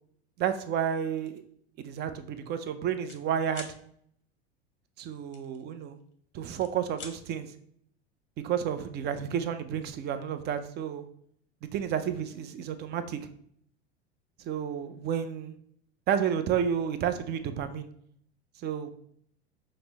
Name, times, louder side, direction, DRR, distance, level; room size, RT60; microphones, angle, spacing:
voice 1, 0.4-1.4 1.8-3.7 5.0-6.0 6.3-7.5 8.4-11.0 11.6-13.3 14.4-15.5 16.1-17.9 18.6-18.9, right 8 dB, 30° right, 10 dB, 0.4 m, -31 dB
sound 1, 1.2-1.4 1.9-2.1 2.3-3.2 3.5-3.8 5.3-6.1 6.5-7.2, left 6 dB, 35° left, 0.7 m, -46 dB
4.4 x 2.1 x 3.9 m, 0.67 s
hypercardioid pair, 90°, 34 cm